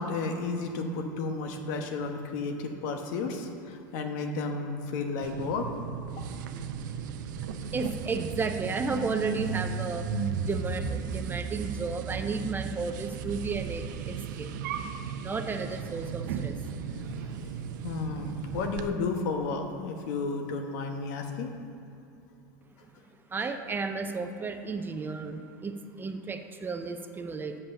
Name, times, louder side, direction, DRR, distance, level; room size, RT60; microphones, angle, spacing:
voice 1, 0.0-5.7 17.8-21.5, left 4 dB, 70° left, 4 dB, 1.1 m, -32 dB
sound 1, 5.2-18.9, right 6 dB, 75° right, 0.6 m, -35 dB
voice 2, 7.7-14.5 15.2-16.6 23.3-27.6, right 4 dB, 20° right, 7 dB, 0.6 m, -33 dB
7.2 x 5.4 x 7.0 m, 2.7 s
supercardioid pair, 105°, 10 cm